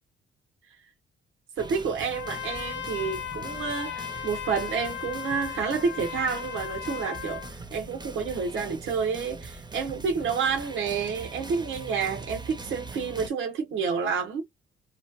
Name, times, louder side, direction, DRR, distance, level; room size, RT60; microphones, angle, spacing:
sound 1, 1.6-13.3, right 3 dB, 20° right, 0.8 m, -42 dB
voice 1, 1.6-14.4, right 5 dB, 80° right, 1.1 m, -29 dB
Trumpet, 2.1-7.5, left 10 dB, 70° left, 0.6 m, -36 dB
3.1 x 2.4 x 2.4 m
cardioid pair, 90°, 20 cm